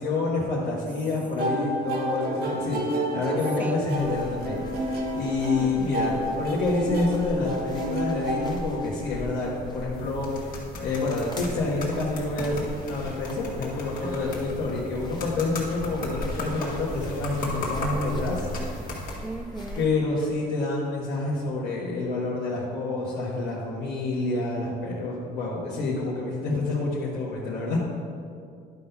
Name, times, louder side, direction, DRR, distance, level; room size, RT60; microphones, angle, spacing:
voice 1, 0.0-18.5 19.8-27.8, left 3 dB, 75° left, -7 dB, 1.5 m, -28 dB
sound 1, 1.4-9.3, right 1 dB, 65° right, 1.3 m, -30 dB
sound 2, 3.9-19.8, left 1 dB, 25° left, 1.3 m, -39 dB
voice 2, 5.6-6.0 14.0-14.4 16.0-16.3 18.6-18.8 19.1-19.9, right 3 dB, 10° right, 9 dB, 0.4 m, -38 dB
sound 3, 9.9-19.1, left 1 dB, 55° left, 2.0 m, -37 dB
11.0 x 4.0 x 5.6 m, 2.3 s
cardioid pair, 110°, 17 cm